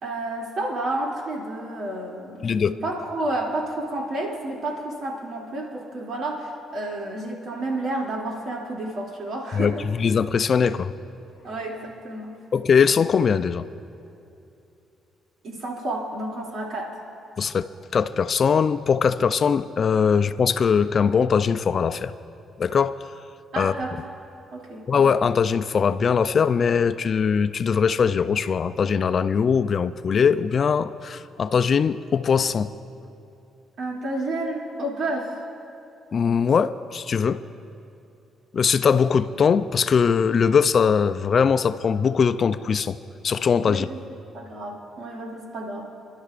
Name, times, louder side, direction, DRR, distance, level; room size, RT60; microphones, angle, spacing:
voice 1, 0.0-9.8 11.4-12.3 15.4-16.9 23.5-24.0 24.5-24.8 33.8-35.3 43.6-44.0 44.3-45.9, right 2 dB, 65° right, -2 dB, 2.6 m, -30 dB
voice 2, 9.5-10.9 12.5-13.7 17.4-17.7 17.9-22.1 22.6-23.0 23.6-23.7 24.9-32.7 36.1-37.4 38.5-43.0 43.2-43.9, left 6 dB, 50° left, 12 dB, 0.4 m, -21 dB
28.0 x 12.0 x 2.5 m, 2.7 s
cardioid pair, 90°, 0 cm